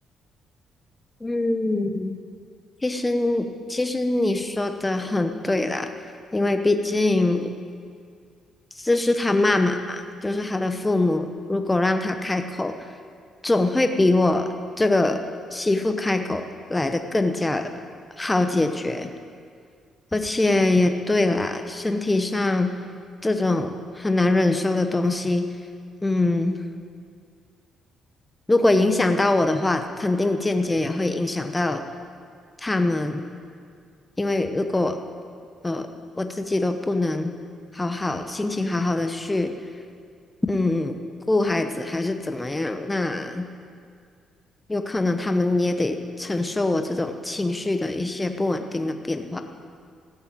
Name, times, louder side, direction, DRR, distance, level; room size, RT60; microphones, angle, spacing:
voice 1, 1.2-2.2 2.8-5.9 6.3-7.5 8.8-12.9 13.4-14.5 14.8-15.2 15.5-17.7 18.2-19.1 20.1-22.7 23.2-25.5 26.0-26.6 28.5-31.8 32.6-33.2 34.2-35.0 35.6-35.9 36.2-37.3 37.7-39.5 40.5-41.0 41.3-43.5 44.7-49.4, left 2 dB, 15° left, 7 dB, 0.9 m, -23 dB
14.5 x 6.8 x 9.1 m, 2.1 s
cardioid pair, 90°, 0 cm